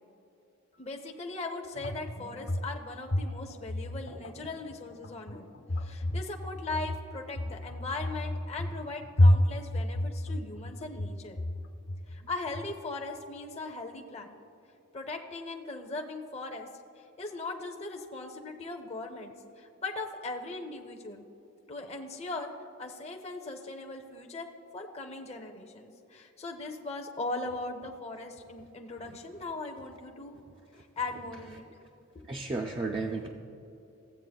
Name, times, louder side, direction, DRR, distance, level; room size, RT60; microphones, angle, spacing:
voice 1, 0.7-5.5 5.8-11.4 12.1-14.4 14.9-16.7 17.0-21.2 21.7-22.5 22.8-24.5 24.7-30.4 30.7-31.6, left 3 dB, 30° left, 1 dB, 0.6 m, -39 dB
sound 1, 1.7-12.7, left 1 dB, 90° left, 1.0 m, -30 dB
voice 2, 32.3-33.3, right 3 dB, 25° right, 1 dB, 0.3 m, -33 dB
15.0 x 8.1 x 2.3 m, 2.9 s
head